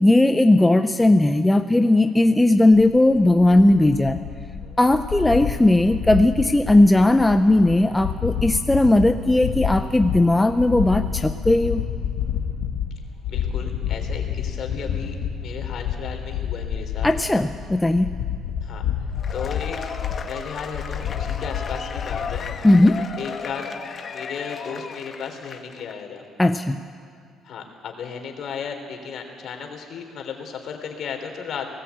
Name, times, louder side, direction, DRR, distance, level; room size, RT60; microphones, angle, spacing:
voice 1, 0.0-4.2 4.8-11.8 17.0-18.2 22.6-23.0 26.4-26.8, left 1 dB, 10° left, 7 dB, 0.6 m, -17 dB
sound 1, 2.7-22.6, left 8 dB, 85° left, 1.9 m, -29 dB
voice 2, 13.3-17.1 18.6-18.8 19.3-19.8 20.2-22.5 23.2-23.7 24.1-26.2 27.4-31.7, left 6 dB, 55° left, 4 dB, 3.4 m, -34 dB
Cheering / Applause / Crowd, 19.1-25.9, left 6 dB, 40° left, 1.2 m, -35 dB
19.0 x 18.0 x 8.4 m, 2.3 s
cardioid pair, 120°, 0 cm